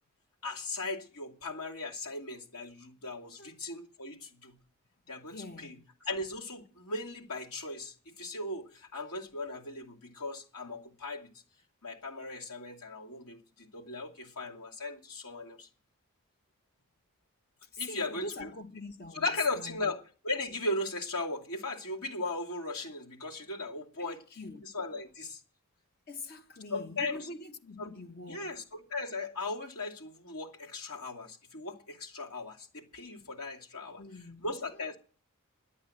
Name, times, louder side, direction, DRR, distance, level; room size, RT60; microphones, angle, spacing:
voice 1, 0.4-4.6 5.1-5.8 6.0-11.3 11.8-15.7 17.8-18.5 19.1-24.2 24.6-25.4 26.7-27.3 27.8-27.9 28.3-34.0 34.4-35.0, left 2 dB, 90° left, 2.7 m, -37 dB
voice 2, 3.2-3.5 5.3-5.8 17.7-19.9 24.0-24.7 26.1-28.6 34.0-34.5 34.7-34.9, left 2 dB, 45° left, 1.0 m, -44 dB
11.0 x 8.6 x 8.9 m
head